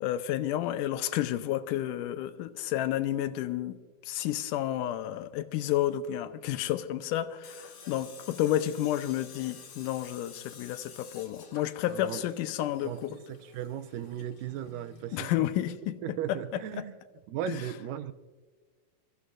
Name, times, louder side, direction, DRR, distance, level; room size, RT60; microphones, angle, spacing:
voice 1, 0.0-3.7 4.0-13.1 15.1-16.2 17.5-17.6, left 12 dB, 80° left, 10 dB, 2.2 m, -31 dB
Tools, 7.4-15.2, left 6 dB, 55° left, 2.2 m, -51 dB
voice 2, 11.9-12.2 12.8-15.5 16.0-17.0 17.3-18.1, right 10 dB, 85° right, 13 dB, 2.2 m, -37 dB
28.0 x 14.5 x 2.6 m, 1.4 s
omnidirectional pair, 3.9 m